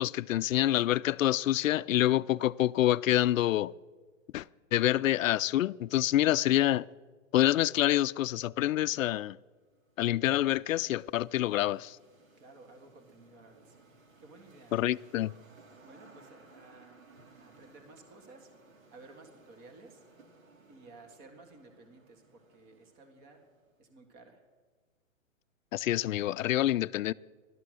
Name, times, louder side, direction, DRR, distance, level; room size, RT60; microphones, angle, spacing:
voice 1, 0.0-3.7 4.3-4.5 4.7-6.9 7.3-9.4 10.0-12.0 14.7-15.3 25.7-27.1, left 13 dB, 75° left, 0.5 m, -27 dB
sound 1, 9.3-23.9, right 3 dB, 80° right, 3.1 m, -60 dB
voice 2, 12.4-13.8 14.2-14.8 15.8-17.1 17.4-18.5 18.9-20.0 20.7-23.4 23.8-24.4, right 3 dB, 25° right, 1.7 m, -55 dB
15.5 x 12.5 x 6.3 m
hypercardioid pair, 160°, 39 cm